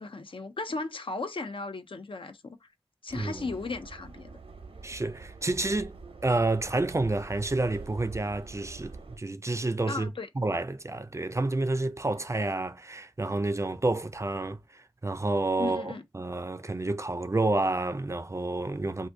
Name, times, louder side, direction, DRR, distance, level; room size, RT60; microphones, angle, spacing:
voice 1, 0.0-2.7 3.0-4.4 9.9-10.3 15.6-16.0, left 3 dB, 65° left, 0.4 m, -36 dB
voice 2, 3.1-3.4 4.8-6.0 6.2-10.1 10.4-19.1, right 2 dB, 30° right, 0.4 m, -29 dB
Subway metro underground, 3.1-9.2, right 4 dB, 85° right, 0.6 m, -45 dB
2.5 x 2.5 x 3.5 m
wide cardioid pair, 45°, 10 cm